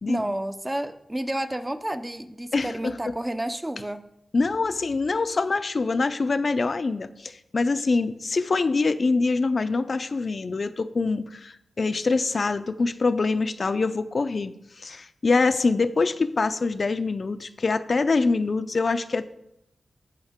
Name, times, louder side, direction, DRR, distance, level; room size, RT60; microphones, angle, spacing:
voice 1, 0.1-4.1, right 1 dB, 20° right, 9 dB, 0.6 m, -30 dB
voice 2, 2.5-2.9 4.3-19.2, left 3 dB, 55° left, 10 dB, 0.5 m, -24 dB
15.0 x 5.2 x 3.6 m, 0.80 s
wide cardioid pair, 75°, 0 cm